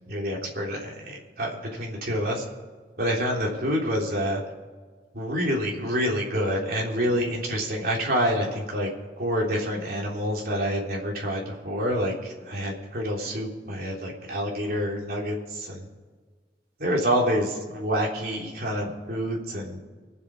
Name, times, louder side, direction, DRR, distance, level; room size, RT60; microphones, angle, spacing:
voice 1, 0.1-2.4 3.0-4.4 5.1-8.9 9.2-15.9 16.8-19.8, equal, 55° right, -2 dB, 3.4 m, -27 dB
24.0 x 8.2 x 4.8 m, 1.5 s
head